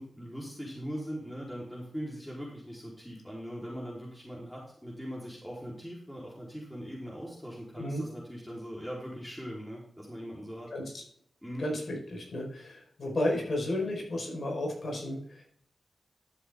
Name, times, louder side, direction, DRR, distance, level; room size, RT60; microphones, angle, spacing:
voice 1, 0.0-10.7 11.4-11.7, equal, 5° left, -5 dB, 4.2 m, -41 dB
voice 2, 10.7-11.0 11.6-15.4, left 1 dB, 60° left, 0 dB, 5.0 m, -33 dB
12.5 x 7.8 x 3.8 m, 0.62 s
cardioid pair, 45°, 0 cm